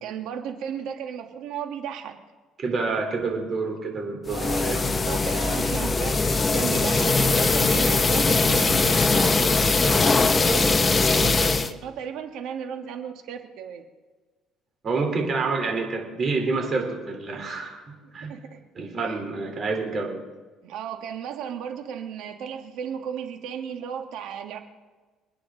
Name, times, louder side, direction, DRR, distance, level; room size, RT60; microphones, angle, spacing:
voice 1, 0.0-2.2 4.3-13.8 18.0-18.6 19.1-19.2 20.6-24.6, right 8 dB, 75° right, 5 dB, 1.8 m, -35 dB
voice 2, 2.6-4.8 14.8-18.3 18.8-20.2, right 4 dB, 40° right, 2 dB, 3.7 m, -28 dB
sound 1, 4.3-11.7, left 3 dB, 20° left, 0.9 m, -21 dB
27.5 x 9.8 x 3.9 m, 1.3 s
cardioid pair, 120°, 0 cm